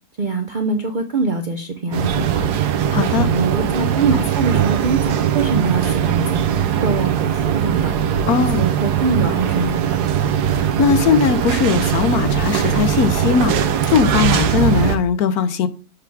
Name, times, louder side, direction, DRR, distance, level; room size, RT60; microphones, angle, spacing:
voice 1, 0.2-2.4 3.1-6.5 6.8-7.9 8.3-10.0, right 3 dB, 60° right, 0.5 m, -23 dB
sound 1, 1.9-15.0, right 9 dB, 85° right, 1.2 m, -20 dB
voice 2, 2.9-3.3 8.3-8.6 10.6-15.7, left 7 dB, 75° left, 1.1 m, -19 dB
6.8 x 3.5 x 4.6 m
omnidirectional pair, 1.7 m